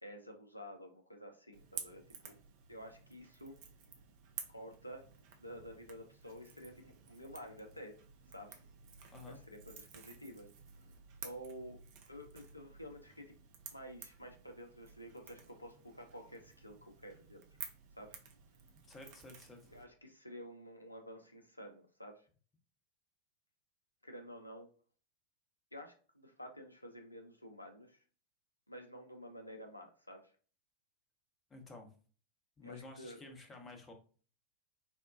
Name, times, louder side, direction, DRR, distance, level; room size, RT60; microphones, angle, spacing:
voice 1, 0.0-2.4 2.7-3.6 4.5-5.0 5.4-8.0 8.3-8.6 9.2-10.5 11.2-11.8 12.1-13.4 13.7-17.4 18.0-18.1 19.7-22.3 24.0-24.7 25.7-28.0 28.7-30.3 32.6-33.2, equal, 85° left, 4 dB, 0.4 m, -50 dB
Crackle / Crack, 1.5-19.8, right 7 dB, 45° right, 0.5 m, -53 dB
voice 2, 18.9-19.7 31.5-31.9 32.6-33.9, left 3 dB, 15° left, 3 dB, 0.8 m, -52 dB
4.2 x 2.2 x 2.4 m, 0.39 s
figure-of-eight pair, 90°, 0 cm